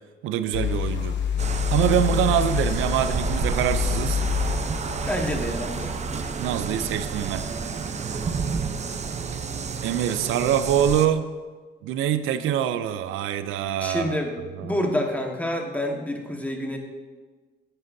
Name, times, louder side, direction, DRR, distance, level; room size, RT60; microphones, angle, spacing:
voice 1, 0.2-1.2 1.7-4.2 6.4-7.4 9.8-11.3 11.8-14.2 14.6-14.7, right 10 dB, 90° right, 12 dB, 0.5 m, -24 dB
sound 1, 0.5-6.3, left 8 dB, 60° left, 0.8 m, -28 dB
sound 2, 1.4-11.1, right 5 dB, 35° right, 0.6 m, -30 dB
voice 2, 5.0-6.0 13.8-14.3 14.6-16.8, left 1 dB, 10° left, 1 dB, 1.4 m, -28 dB
9.9 x 9.5 x 2.7 m, 1.4 s
cardioid pair, 90°, 20 cm